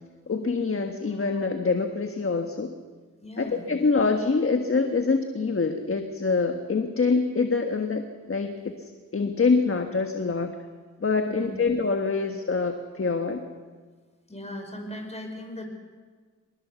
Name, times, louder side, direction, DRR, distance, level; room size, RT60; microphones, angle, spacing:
voice 1, 0.3-2.7 3.4-8.0 8.3-10.5 11.0-13.4, left 4 dB, 40° left, 5 dB, 1.5 m, -25 dB
voice 2, 3.2-3.6 11.2-11.6 14.3-15.6, left 1 dB, 20° left, 3 dB, 5.3 m, -38 dB
24.5 x 20.0 x 7.1 m, 1.5 s
cardioid pair, 75°, 32 cm